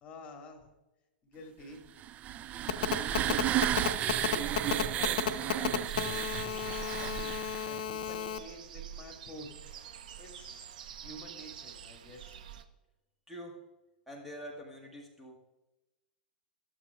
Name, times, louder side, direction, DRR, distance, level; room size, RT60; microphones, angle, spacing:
voice 1, 0.0-0.7 1.2-1.8 3.0-3.6 4.4-7.3 7.7-9.5 10.2-10.7 11.0-12.4, left 1 dB, 30° left, 3 dB, 2.1 m, -49 dB
sound 1, 2.0-7.8, right 12 dB, 30° right, 0.3 m, -33 dB
Telephone, 2.7-8.4, left 10 dB, 60° left, 0.7 m, -32 dB
sound 2, 5.8-12.6, right 9 dB, 65° right, 0.8 m, -46 dB
voice 2, 13.3-13.6 14.1-15.4, equal, 5° right, -1 dB, 1.3 m, -45 dB
15.5 x 7.6 x 2.3 m, 1.0 s
figure-of-eight pair, 105°, 5 cm